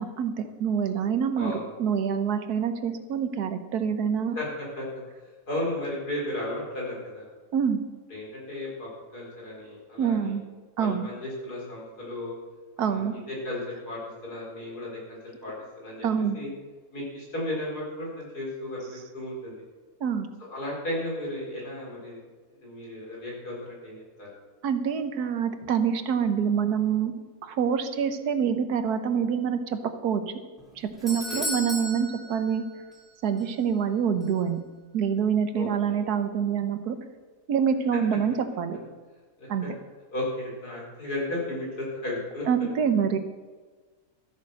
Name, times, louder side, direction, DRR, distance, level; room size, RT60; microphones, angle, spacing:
voice 1, 0.0-4.4 7.5-7.8 10.0-10.4 10.8-11.1 12.8-13.1 16.0-16.4 20.0-20.3 24.6-27.1 27.4-30.2 30.8-32.6 33.2-34.6 34.9-37.0 37.5-38.8 39.5-39.7 42.5-43.2, right 7 dB, 80° right, 9 dB, 1.5 m, -26 dB
voice 2, 4.3-4.8 5.5-7.3 8.1-10.3 10.8-12.3 12.8-16.1 16.3-16.5 16.9-19.6 20.5-22.2 22.6-24.3 31.3-31.5 35.5-36.0 37.9-38.0 39.4-39.7 40.1-42.4, left 1 dB, 80° left, -4 dB, 5.0 m, -34 dB
Doorbell, 30.6-33.1 33.4-33.5 34.2-34.3, equal, ahead, 3.5 m, -35 dB
13.5 x 8.5 x 6.5 m, 1.4 s
omnidirectional pair, 1.6 m